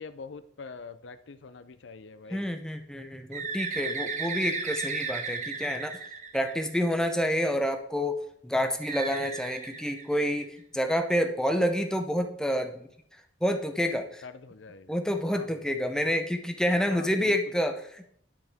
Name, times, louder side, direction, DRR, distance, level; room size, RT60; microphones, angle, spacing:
voice 1, 0.0-2.4 14.2-14.9 15.3-15.6 16.9-17.4, left 4 dB, 85° left, 12 dB, 0.6 m, -44 dB
voice 2, 2.3-5.9 6.3-12.8 13.4-14.2 14.9-18.1, equal, 5° left, 6 dB, 0.7 m, -28 dB
Bird, 3.3-7.1 8.8-10.6, right 5 dB, 45° right, 1.0 m, -35 dB
10.0 x 6.6 x 3.5 m, 0.68 s
head